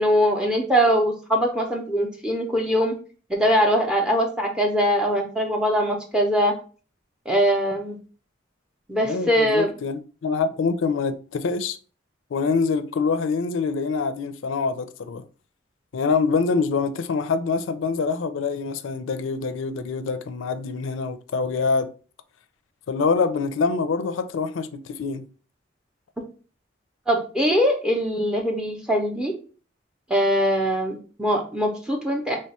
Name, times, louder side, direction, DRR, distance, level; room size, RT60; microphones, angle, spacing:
voice 1, 0.0-2.9 3.3-6.5 7.3-8.0 8.9-9.7 27.1-29.3 30.1-32.4, equal, 5° right, 0.5 m, -22 dB
voice 2, 9.0-11.8 12.3-15.2 15.9-21.9 22.9-25.2, left 4 dB, 80° left, 0.4 m, -25 dB
3.2 x 2.2 x 4.1 m
head